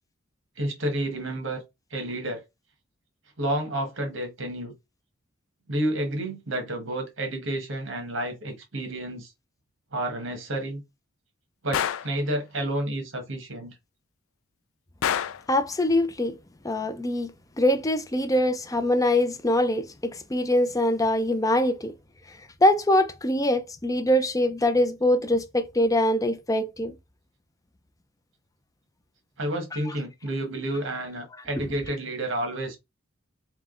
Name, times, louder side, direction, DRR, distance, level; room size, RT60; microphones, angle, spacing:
voice 1, 0.6-1.6 1.9-2.4 3.4-4.7 5.7-9.3 9.9-10.8 11.6-13.7 29.4-32.8, right 1 dB, 65° right, 1.3 m, -30 dB
Gunshot gunfire, 11.7-12.2 15.0-15.5, left 9 dB, 85° left, 0.4 m, -27 dB
voice 2, 15.5-16.3 16.6-17.3 17.6-21.9 22.6-26.9 29.7-29.8, left 1 dB, 15° left, 0.5 m, -23 dB
3.6 x 3.1 x 3.7 m
head